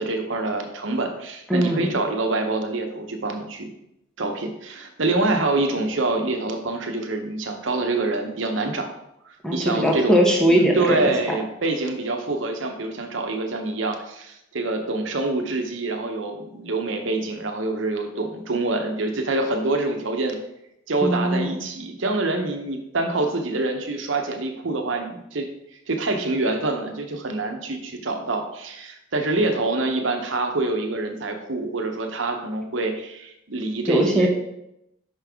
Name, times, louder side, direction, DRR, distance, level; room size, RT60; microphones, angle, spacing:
voice 1, 0.0-3.7 4.2-8.9 9.5-10.2 10.5-20.4 20.9-25.5 25.9-34.3, right 2 dB, 70° right, 4 dB, 0.8 m, -26 dB
voice 2, 1.5-1.9 9.4-11.4 21.0-21.6 33.9-34.3, equal, 5° left, -1 dB, 1.0 m, -20 dB
5.7 x 5.3 x 3.6 m, 0.82 s
head